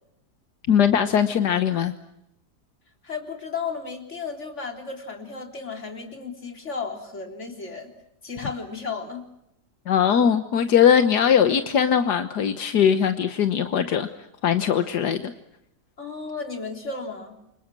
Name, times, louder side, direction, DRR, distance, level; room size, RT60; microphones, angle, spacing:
voice 1, 0.7-1.9 9.9-14.1 14.4-15.3, left 8 dB, 80° left, 9 dB, 1.7 m, -20 dB
voice 2, 3.0-7.9 8.2-9.2 16.0-17.4, left 4 dB, 45° left, 4 dB, 3.9 m, -34 dB
29.0 x 26.5 x 6.2 m, 0.83 s
omnidirectional pair, 1.7 m